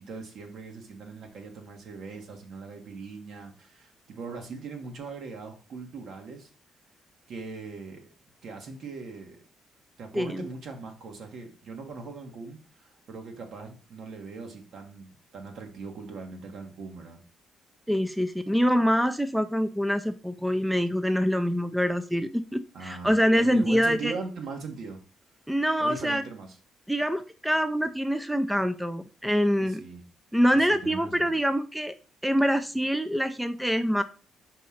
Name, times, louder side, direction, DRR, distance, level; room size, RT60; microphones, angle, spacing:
voice 1, 0.0-6.5 7.3-8.1 8.4-9.4 10.0-17.2 22.7-25.0 25.8-26.5 29.6-30.0 30.5-31.3, right 4 dB, 70° right, 3 dB, 1.6 m, -40 dB
voice 2, 17.9-24.1 25.5-26.2 26.9-29.8 30.3-31.9 32.2-34.0, equal, 5° right, 9 dB, 0.5 m, -25 dB
5.3 x 3.7 x 5.7 m, 0.38 s
cardioid pair, 90°, 0 cm